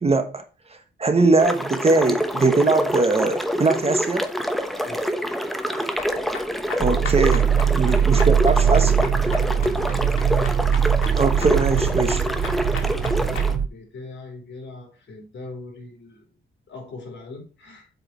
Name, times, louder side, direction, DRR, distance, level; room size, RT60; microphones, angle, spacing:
voice 1, 0.0-0.4 1.0-4.3 6.8-7.5 7.8-9.1 11.1-12.2, right 3 dB, 30° right, 1.1 m, -21 dB
sound 1, 1.4-13.5, equal, ahead, 1.0 m, -26 dB
sound 2, 6.0-13.5, left 5 dB, 75° left, 2.0 m, -37 dB
sound 3, 6.8-13.7, right 8 dB, 50° right, 0.5 m, -21 dB
voice 2, 9.4-9.7 12.7-16.3 16.7-17.9, left 3 dB, 60° left, 3.7 m, -40 dB
8.1 x 4.8 x 4.4 m
cardioid pair, 115°, 21 cm